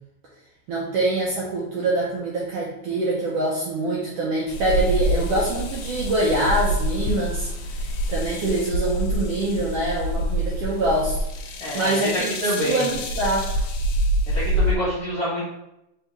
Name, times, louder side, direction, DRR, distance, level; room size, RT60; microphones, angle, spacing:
voice 1, 0.7-7.5 8.1-13.6, right 2 dB, 75° right, -4 dB, 1.4 m, -25 dB
sound 1, 4.5-14.7, equal, 75° left, 1.7 m, -26 dB
voice 2, 11.6-12.9 14.3-15.5, right 1 dB, 45° left, -9 dB, 1.2 m, -26 dB
4.0 x 3.5 x 3.2 m, 0.87 s
omnidirectional pair, 3.4 m